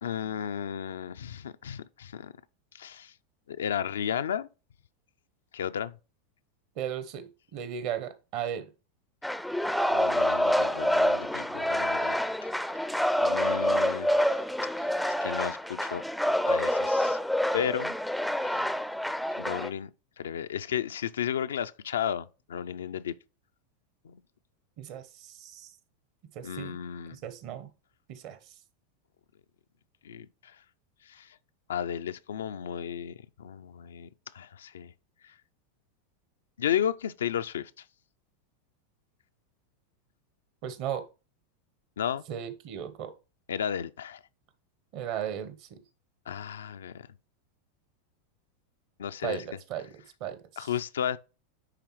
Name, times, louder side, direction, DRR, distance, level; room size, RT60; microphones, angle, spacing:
voice 1, 0.0-2.3 2.7-3.1 3.5-4.5 5.5-5.9 9.9-12.2 12.4-12.5 13.2-14.3 14.8-16.0 16.5-17.2 17.5-17.9 18.4-18.7 19.4-19.9 20.2-23.1 24.0-24.2 26.4-27.2 30.0-30.3 31.1-31.3 31.7-34.1 34.3-34.9 36.6-37.7 42.0-42.2 43.5-44.2 46.3-47.1 49.0-49.4 50.6-51.2, left 9 dB, 80° left, 0.3 m, -33 dB
voice 2, 6.8-8.7 24.8-25.7 26.3-26.8 27.1-27.7 28.1-28.5 40.6-41.1 42.3-43.1 44.9-45.8 49.2-50.7, right 9 dB, 55° right, 0.9 m, -36 dB
sound 1, 9.2-19.7, equal, ahead, 0.4 m, -27 dB
9.7 x 3.5 x 3.1 m
hypercardioid pair, 95°, 0 cm